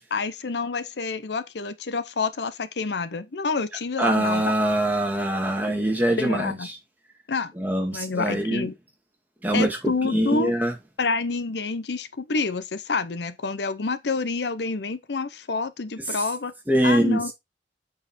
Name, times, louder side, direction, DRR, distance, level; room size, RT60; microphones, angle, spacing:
voice 1, 0.1-4.5 6.2-6.7 7.3-7.5 7.9-8.7 9.5-10.5 11.0-16.5 16.8-17.3, left 4 dB, 80° left, 0.7 m, -28 dB
voice 2, 4.0-6.6 7.6-8.7 9.4-9.8 10.1-10.7 16.7-17.3, right 1 dB, 10° right, 1.9 m, -23 dB
8.1 x 4.8 x 4.2 m
head